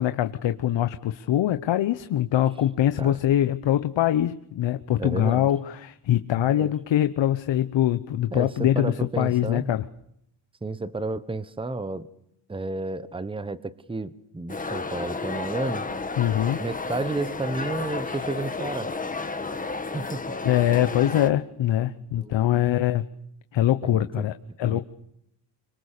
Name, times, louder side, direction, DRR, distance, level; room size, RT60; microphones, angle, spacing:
voice 1, 0.0-9.8 16.2-16.6 20.4-23.0 23.5-24.8, left 12 dB, 65° left, 10 dB, 1.1 m, -23 dB
voice 2, 5.0-5.5 6.4-6.7 8.3-9.7 10.6-12.1 12.5-15.9 16.6-18.9 19.9-20.2 22.2-22.5 23.8-24.2 24.6-24.8, right 3 dB, 10° right, 15 dB, 1.1 m, -32 dB
sound 1, 14.5-21.3, left 3 dB, 15° left, 1.6 m, -32 dB
26.0 x 24.0 x 6.7 m, 0.76 s
cardioid pair, 135°, 47 cm